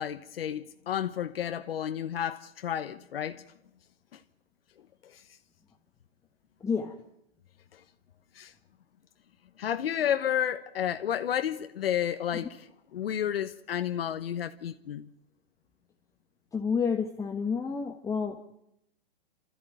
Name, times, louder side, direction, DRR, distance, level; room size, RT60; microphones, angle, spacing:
voice 1, 0.0-3.4 5.0-5.2 8.3-8.5 9.6-15.1, left 10 dB, 75° left, 1.2 m, -31 dB
voice 2, 6.6-6.9 16.5-18.4, left 6 dB, 10° left, 1.3 m, -29 dB
28.5 x 13.5 x 9.2 m
hypercardioid pair, 135°, 30 cm